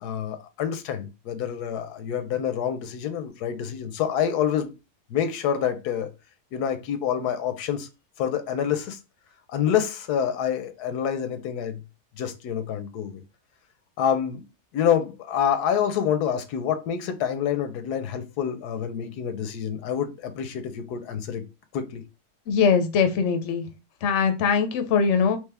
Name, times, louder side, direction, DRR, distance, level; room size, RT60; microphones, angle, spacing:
voice 1, 0.0-4.7 5.1-6.1 6.5-7.9 8.2-9.0 9.5-11.8 12.2-13.2 14.0-14.4 14.7-21.4 21.7-22.0, left 8 dB, 85° left, 1.2 m, -27 dB
voice 2, 22.5-23.7 24.0-25.4, left 6 dB, 60° left, 0.8 m, -21 dB
3.4 x 3.0 x 3.3 m
omnidirectional pair, 1.6 m